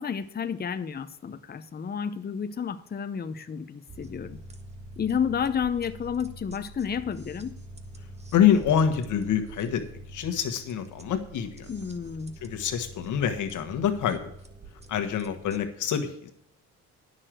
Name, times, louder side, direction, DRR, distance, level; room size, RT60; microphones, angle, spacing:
voice 1, 0.0-4.4 5.0-7.5 11.7-12.3, left 7 dB, 30° left, 10 dB, 0.7 m, -31 dB
sound 1, 3.9-15.6, right 1 dB, 20° right, 1.3 m, -45 dB
voice 2, 8.3-9.8 10.1-11.7 12.4-14.3 14.9-16.3, left 8 dB, 75° left, 7 dB, 1.5 m, -26 dB
9.8 x 6.5 x 7.6 m, 0.75 s
cardioid pair, 90°, 30 cm